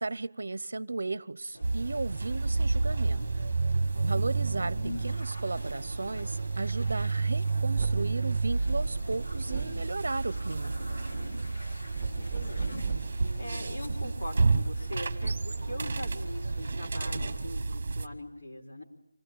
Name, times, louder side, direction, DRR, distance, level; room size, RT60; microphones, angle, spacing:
voice 1, 0.0-3.3 4.0-10.7, right 3 dB, 65° right, 21 dB, 0.7 m, -35 dB
sound 1, 1.5-17.3, left 1 dB, 85° left, 6.1 m, -46 dB
sound 2, 1.6-18.1, right 3 dB, 35° right, 1.3 m, -30 dB
sound 3, 7.8-8.2 9.5-9.8 12.0-13.2, right 6 dB, 10° right, 2.0 m, -35 dB
voice 2, 12.2-12.8 13.1-18.8, left 1 dB, 45° left, 0 dB, 3.7 m, -42 dB
25.0 x 17.5 x 8.7 m, 0.92 s
figure-of-eight pair, 175°, 0 cm